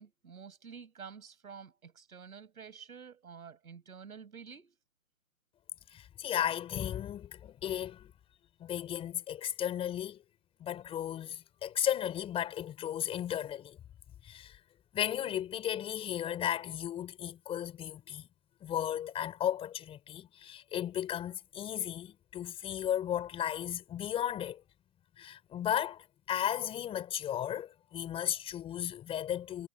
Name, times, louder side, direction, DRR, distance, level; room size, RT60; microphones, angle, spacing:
voice 1, 0.0-4.8, right 6 dB, 70° right, 7.8 m, -49 dB
voice 2, 5.9-8.1 8.6-10.2 10.6-13.8 14.2-14.6 14.9-18.3 18.6-24.6 25.2-29.7, left 10 dB, 10° left, 5.3 m, -35 dB
hypercardioid pair, 155°, 45 cm